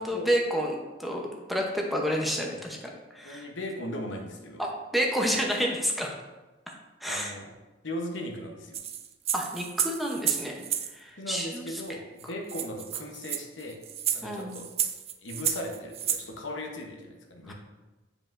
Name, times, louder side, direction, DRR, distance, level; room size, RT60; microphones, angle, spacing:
voice 1, 0.0-3.5 4.6-6.1 7.0-7.3 9.3-11.8 14.2-14.6 17.4-17.5, equal, ahead, -1 dB, 0.7 m, -30 dB
voice 2, 3.2-4.6 7.1-7.5 7.8-8.8 11.2-13.8 14.1-14.7 15.2-17.5, left 1 dB, 80° left, 2 dB, 0.9 m, -38 dB
sound 1, 8.7-10.9 11.9-12.0 12.2-12.3 12.5-16.2, right 10 dB, 35° right, 0.3 m, -31 dB
7.8 x 4.9 x 2.5 m, 1.1 s
head